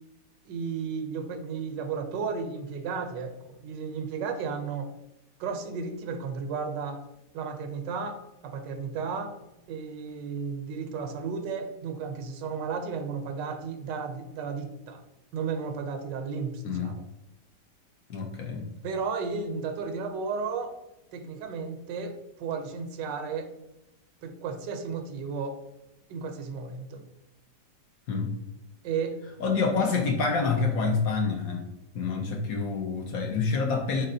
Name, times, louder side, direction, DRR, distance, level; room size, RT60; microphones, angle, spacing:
voice 1, 0.5-4.9 5.4-7.0 7.3-9.3 9.7-15.0 15.3-17.0 18.8-20.7 21.1-23.5 24.2-25.6 26.1-27.0 28.8-29.2, right 5 dB, 85° right, 7 dB, 1.3 m, -33 dB
voice 2, 18.1-18.7 28.1-28.3 29.4-31.7 31.9-34.1, left 4 dB, 65° left, 2 dB, 0.9 m, -27 dB
4.1 x 4.0 x 2.6 m, 0.93 s
omnidirectional pair, 1.9 m